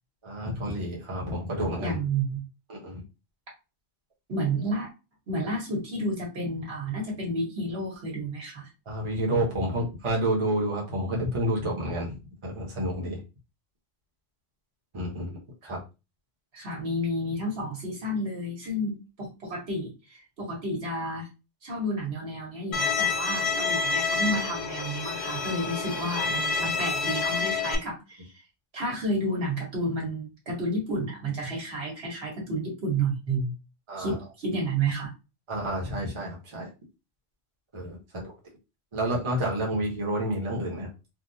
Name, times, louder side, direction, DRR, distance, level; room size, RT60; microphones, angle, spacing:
voice 1, 0.2-2.0 2.7-3.0 8.9-12.2 12.4-13.2 14.9-15.8 33.9-34.2 35.5-36.7 37.7-38.3 38.9-40.9, right 1 dB, 30° right, -3 dB, 0.9 m, -29 dB
voice 2, 1.8-2.4 4.3-4.9 5.3-8.7 16.5-21.3 21.6-28.3 28.7-33.5 34.0-35.1, right 1 dB, 70° right, -2 dB, 1.5 m, -31 dB
Bowed string instrument, 22.7-27.8, left 4 dB, 75° left, 1.0 m, -28 dB
3.5 x 2.3 x 2.7 m, 0.28 s
omnidirectional pair, 1.1 m